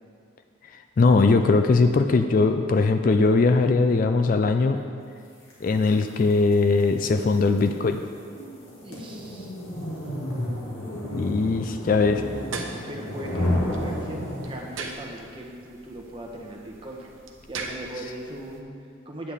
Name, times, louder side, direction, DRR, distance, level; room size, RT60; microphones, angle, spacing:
voice 1, 1.0-4.8 5.6-8.0 11.1-12.2, left 3 dB, 40° left, 7 dB, 0.3 m, -20 dB
sound 1, 5.5-14.9, left 1 dB, 85° left, 2.2 m, -32 dB
voice 2, 8.8-9.5 12.9-17.1 17.5-19.3, right 1 dB, 25° right, -1 dB, 1.0 m, -39 dB
sound 2, 12.2-18.6, right 4 dB, 80° right, 0.8 m, -41 dB
9.7 x 8.3 x 3.6 m, 2.3 s
head